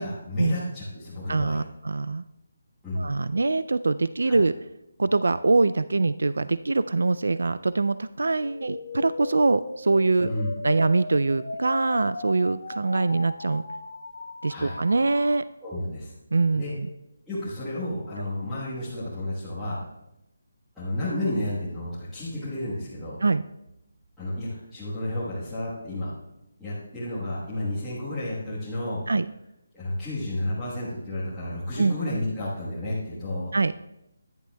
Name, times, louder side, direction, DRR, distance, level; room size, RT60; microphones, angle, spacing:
voice 1, 0.0-1.6 2.8-3.0 4.2-4.4 10.2-10.5 14.5-14.8 15.6-16.1 16.6-16.7 17.3-19.8 20.7-23.2 24.2-26.1 26.6-29.0 29.7-33.5, left 1 dB, ahead, -16 dB, 1.3 m, -31 dB
voice 2, 1.3-2.2 3.0-4.5 5.0-10.3 10.6-13.6 14.4-15.4 16.3-16.9 23.2-23.4 29.1-29.3 31.8-32.0 33.5-33.7, right 3 dB, 90° right, 15 dB, 0.3 m, -23 dB
sound 1, 8.3-15.3, left 3 dB, 45° left, 1.1 m, -37 dB
15.0 x 11.0 x 2.3 m, 0.87 s
hypercardioid pair, 180°, 0 cm